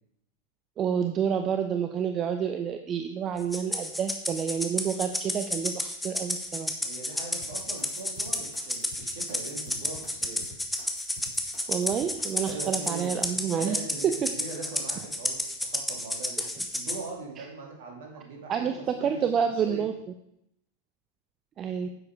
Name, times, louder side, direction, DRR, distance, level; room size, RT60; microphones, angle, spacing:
voice 1, 0.8-6.7 11.7-13.8 14.0-14.3 16.4-16.5 18.5-19.9 21.6-21.9, right 7 dB, 30° right, 7 dB, 0.7 m, -29 dB
Rattle (instrument), 3.5-17.0, left 1 dB, 5° left, 1.2 m, -31 dB
voice 2, 6.8-10.5 12.4-13.2 13.6-16.5 16.7-19.3 19.6-19.9 21.8-21.9, right 4 dB, 55° right, 0 dB, 3.0 m, -41 dB
sound 1, 7.4-13.3, left 3 dB, 45° left, 3.2 m, -48 dB
9.8 x 7.7 x 4.8 m, 0.77 s
figure-of-eight pair, 90°, 0 cm